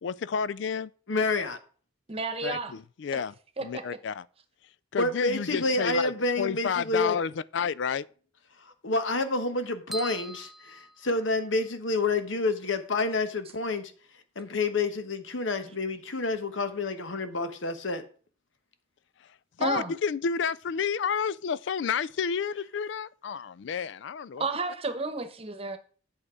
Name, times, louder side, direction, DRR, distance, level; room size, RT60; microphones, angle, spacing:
voice 1, 0.0-0.9 2.4-3.3 3.6-4.2 4.9-6.1 6.4-8.1 19.6-24.4, left 6 dB, 65° left, 0.4 m, -30 dB
voice 2, 1.1-1.6 5.0-7.2 8.6-13.9 14.4-18.0, left 3 dB, 85° left, 1.1 m, -29 dB
voice 3, 2.1-2.7 3.6-4.0 19.6-19.9 24.4-25.8, right 3 dB, 30° right, 1.0 m, -31 dB
sound 1, 9.9-11.7, right 1 dB, ahead, 0.4 m, -42 dB
8.6 x 6.5 x 4.9 m
head